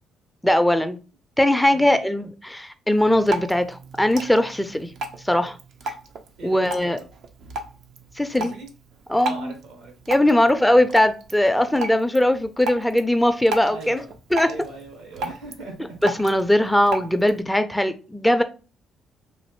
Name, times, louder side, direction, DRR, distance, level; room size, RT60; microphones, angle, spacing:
voice 1, 0.4-1.0 1.4-4.9 5.2-5.6 6.4-7.0 8.2-8.5 9.1-9.5 10.1-14.0 14.3-14.5 16.0-18.4, left 1 dB, 5° left, 0.4 m, -20 dB
voice 2, 1.7-2.1 6.4-7.0 8.4-8.7 9.2-9.9 10.2-10.4 13.7-14.1 14.4-16.0 16.6-16.7, right 3 dB, 80° right, 1.3 m, -40 dB
Drip, 2.9-17.4, right 2 dB, 60° right, 0.5 m, -35 dB
3.1 x 2.6 x 2.9 m
hypercardioid pair, 50°, 0 cm